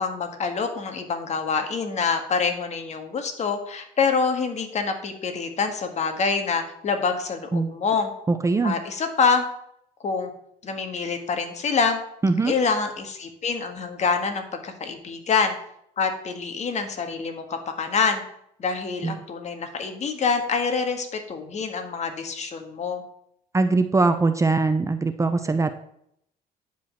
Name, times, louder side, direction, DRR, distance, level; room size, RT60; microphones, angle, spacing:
voice 1, 0.0-8.1 8.6-9.4 10.0-10.3 10.6-12.0 12.4-15.6 16.0-18.2 18.6-23.1, left 5 dB, 40° left, 5 dB, 1.8 m, -26 dB
voice 2, 8.3-8.8 12.2-12.5 19.0-19.1 23.5-25.8, right 3 dB, 20° right, 9 dB, 0.7 m, -21 dB
10.0 x 5.2 x 6.9 m, 0.72 s
cardioid pair, 110°, 17 cm